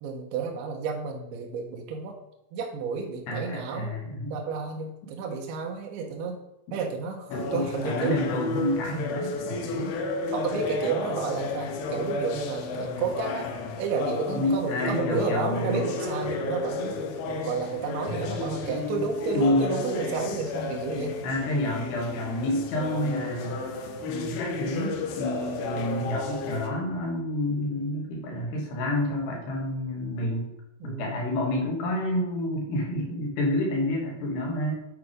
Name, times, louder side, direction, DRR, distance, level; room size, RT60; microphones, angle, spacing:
voice 1, 0.0-2.1 2.5-3.9 4.3-6.4 6.7-8.2 8.9-9.1 10.3-13.5 13.8-17.0 17.3-21.2 28.5-28.6 30.8-31.2, right 5 dB, 75° right, 1 dB, 2.5 m, -31 dB
voice 2, 3.3-4.3 7.3-9.9 14.3-15.9 19.3-19.7 21.2-23.6 24.0-30.5 30.8-34.8, left 1 dB, 70° left, 0 dB, 3.4 m, -29 dB
sound 1, 7.3-26.7, left 3 dB, 90° left, 3.3 m, -32 dB
8.9 x 4.7 x 5.0 m, 0.86 s
omnidirectional pair, 5.4 m